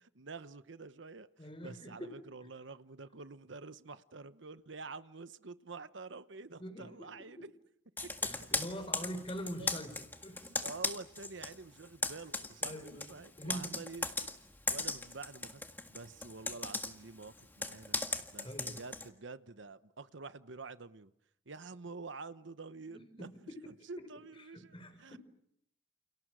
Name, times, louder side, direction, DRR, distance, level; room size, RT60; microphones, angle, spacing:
voice 1, 0.1-7.5 8.0-8.1 9.6-9.8 10.6-14.3 14.7-15.6 15.9-18.0 18.3-21.1 21.5-23.3 23.7-25.2, right 3 dB, 75° right, 13 dB, 1.0 m, -48 dB
voice 2, 1.4-2.1 6.6-7.5 8.2-10.5 12.6-13.8 18.4-18.8 22.9-23.6 24.0-24.1 24.5-25.2, equal, 30° left, 9 dB, 4.5 m, -44 dB
Computer keyboard, 8.0-11.5 11.8-19.1, left 3 dB, 10° left, 1.7 m, -37 dB
29.5 x 29.0 x 6.3 m, 0.76 s
head